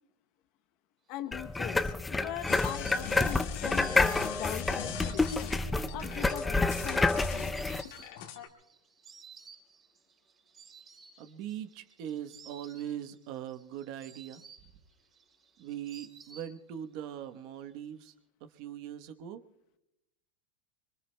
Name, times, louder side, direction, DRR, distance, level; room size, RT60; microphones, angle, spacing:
voice 1, 1.1-5.6 5.9-7.7, left 12 dB, 45° left, 9 dB, 0.8 m, -41 dB
sound 1, 1.3-7.8, left 3 dB, 10° left, 0.5 m, -29 dB
Insect, 1.3-17.0 17.2-18.0, right 6 dB, 25° right, 4.8 m, -56 dB
sound 2, 2.5-8.5, left 9 dB, 65° left, 1.7 m, -41 dB
voice 2, 11.2-14.4 15.6-18.1 18.4-19.4, right 10 dB, 45° right, 10 dB, 1.0 m, -41 dB
25.0 x 23.0 x 2.2 m, 0.88 s
supercardioid pair, 150°, 0 cm